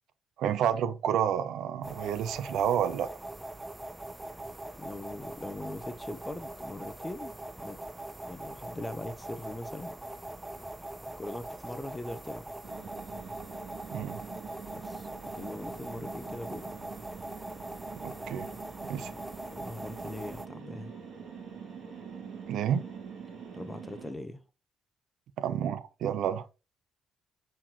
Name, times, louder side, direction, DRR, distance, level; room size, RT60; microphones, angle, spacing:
voice 1, 0.4-3.1 13.9-14.2 18.0-18.5 18.9-19.1 22.5-22.9 25.4-26.5, right 9 dB, 80° right, 0.6 m, -29 dB
sound 1, 1.8-20.5, right 1 dB, 10° right, 0.4 m, -42 dB
voice 2, 4.8-7.8 8.2-10.0 11.2-12.5 14.7-16.7 19.1-19.2 19.5-20.9 23.5-24.4, left 1 dB, 15° left, 0.9 m, -41 dB
sound 2, 12.6-24.1, right 6 dB, 65° right, 2.4 m, -45 dB
7.3 x 4.5 x 2.9 m
cardioid pair, 90°, 0 cm